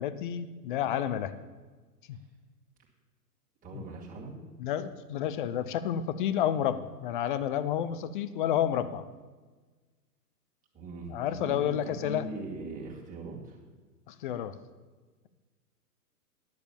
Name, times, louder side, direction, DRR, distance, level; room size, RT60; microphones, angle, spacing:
voice 1, 0.0-1.3 2.1-2.2 3.7-3.8 4.6-9.0 11.1-12.2 14.1-14.5, left 10 dB, 35° left, 13 dB, 0.5 m, -30 dB
voice 2, 3.6-4.4 10.7-13.6, right 3 dB, 15° right, -3 dB, 2.2 m, -41 dB
10.5 x 6.9 x 6.9 m, 1.4 s
hypercardioid pair, 130°, 49 cm